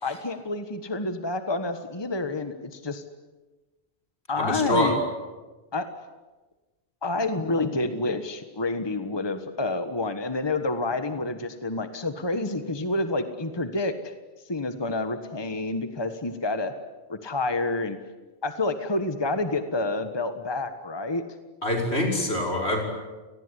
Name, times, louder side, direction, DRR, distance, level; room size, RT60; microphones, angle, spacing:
voice 1, 0.0-3.0 4.3-5.0 5.7-5.9 7.0-14.1 14.4-16.7 17.1-18.0 18.4-21.2, left 2 dB, 25° left, 9 dB, 1.4 m, -28 dB
voice 2, 4.4-4.9 21.6-22.8, left 1 dB, 75° left, 1 dB, 6.1 m, -25 dB
29.0 x 19.5 x 9.9 m, 1.2 s
omnidirectional pair, 1.1 m